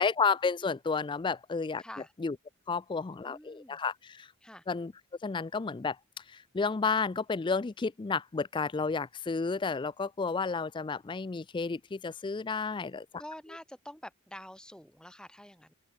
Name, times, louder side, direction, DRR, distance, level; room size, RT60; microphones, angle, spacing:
voice 1, 0.0-1.8 2.2-2.4 2.7-4.3 4.7-4.9 5.2-6.0 6.3-13.1, left 4 dB, 20° left, 0.3 m, -31 dB
voice 2, 1.8-2.1 3.2-3.8 4.4-4.6 13.2-15.7, left 1 dB, 5° left, 3.7 m, -47 dB
open air
head